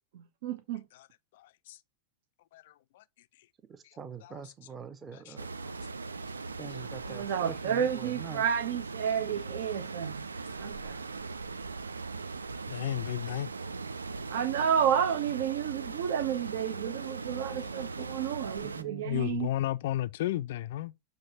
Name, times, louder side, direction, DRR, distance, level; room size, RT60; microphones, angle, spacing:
voice 1, 0.1-0.8 7.1-10.2 10.6-11.0 14.3-19.5, right 8 dB, 55° right, 0.7 m, -31 dB
voice 2, 3.7-5.5 6.6-8.4 18.6-19.1, right 7 dB, 20° right, 0.9 m, -44 dB
sound 1, 5.4-18.8, right 4 dB, 75° right, 0.4 m, -39 dB
voice 3, 12.7-13.5 17.7-17.8 19.0-20.9, left 13 dB, 55° left, 0.4 m, -32 dB
6.8 x 3.1 x 5.5 m
figure-of-eight pair, 90°, 0 cm